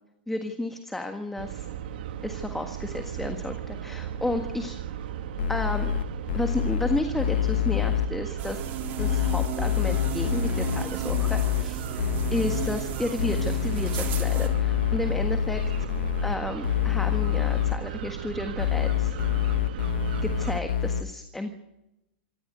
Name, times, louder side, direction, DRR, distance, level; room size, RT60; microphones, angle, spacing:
voice 1, 0.3-1.7 2.2-4.8 5.5-5.9 6.3-8.6 9.0-15.9 16.2-19.2 20.2-21.5, left 1 dB, 5° left, 5 dB, 1.6 m, -32 dB
sound 1, 1.4-20.6, right 10 dB, 70° right, 2.0 m, -36 dB
sound 2, 5.4-8.1 9.0-11.6 12.0-12.7 13.2-16.4 16.6-17.7 18.6-21.0, left 11 dB, 85° left, 1.4 m, -26 dB
sound 3, 8.4-14.5, right 5 dB, 35° right, 4.2 m, -35 dB
26.0 x 13.5 x 9.4 m, 0.93 s
hypercardioid pair, 140°, 5 cm